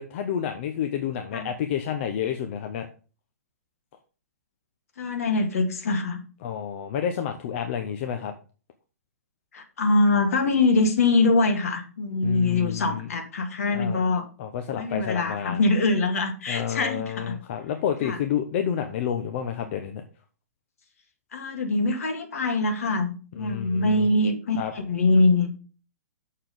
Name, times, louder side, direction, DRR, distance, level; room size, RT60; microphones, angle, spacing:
voice 1, 0.0-2.9 6.4-8.3 12.2-13.1 13.7-14.0 14.4-15.6 16.5-20.0 23.4-24.0 24.6-24.7, left 9 dB, 50° left, 6 dB, 0.9 m, -29 dB
voice 2, 5.0-6.2 9.5-14.3 14.7-17.4 18.0-18.2 21.3-25.5, left 3 dB, 65° left, 6 dB, 2.0 m, -23 dB
6.6 x 5.7 x 5.3 m, 0.36 s
hypercardioid pair, 120°, 8 cm